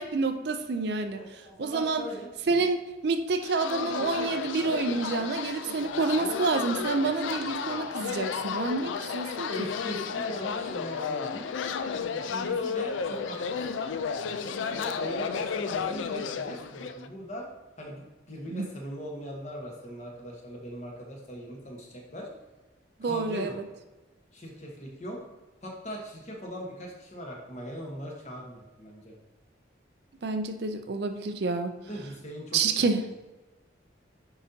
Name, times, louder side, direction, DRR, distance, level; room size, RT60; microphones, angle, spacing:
voice 1, 0.0-2.1 2.5-9.7 18.5-18.7 23.0-23.6 30.2-31.8 32.5-33.0, right 3 dB, 55° right, 8 dB, 0.4 m, -28 dB
voice 2, 1.1-2.7 9.5-11.5 12.1-13.8 14.2-17.5 17.8-22.3 23.0-23.5 24.3-25.2 25.6-29.1 31.9-32.9, equal, 35° left, -1 dB, 1.2 m, -40 dB
sound 1, 3.4-17.1, left 6 dB, 80° left, 0.4 m, -33 dB
9.4 x 3.9 x 2.8 m, 1.1 s
head